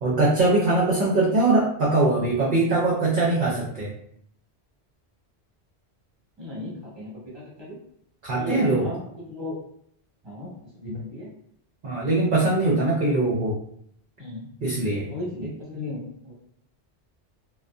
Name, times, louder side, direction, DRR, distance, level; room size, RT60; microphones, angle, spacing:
voice 1, 0.0-3.9 8.2-8.9 10.9-11.0 11.8-13.5 14.6-15.1 15.4-15.5, right 2 dB, 55° right, -5 dB, 0.7 m, -22 dB
voice 2, 6.4-7.8 8.3-9.6 10.2-11.3 14.2-14.4 15.1-16.3, left 1 dB, 25° right, -6 dB, 1.0 m, -36 dB
2.5 x 2.2 x 2.3 m, 0.68 s
omnidirectional pair, 1.1 m